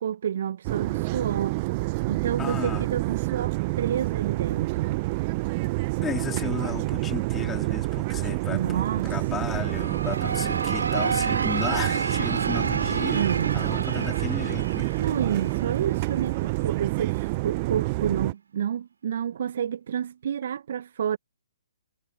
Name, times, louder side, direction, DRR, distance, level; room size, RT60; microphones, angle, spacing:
voice 1, 0.0-1.6 2.1-5.0 8.5-9.1 13.1-13.7 15.0-21.2, right 9 dB, 55° right, 1.3 m, -29 dB
sound 1, 0.6-18.3, right 23 dB, 35° right, 0.8 m, -28 dB
voice 2, 2.4-2.9 6.0-14.9, left 8 dB, 15° left, 3.8 m, -35 dB
sound 2, 9.4-16.2, right 5 dB, 70° right, 3.2 m, -30 dB
figure-of-eight pair, 130°, 0 cm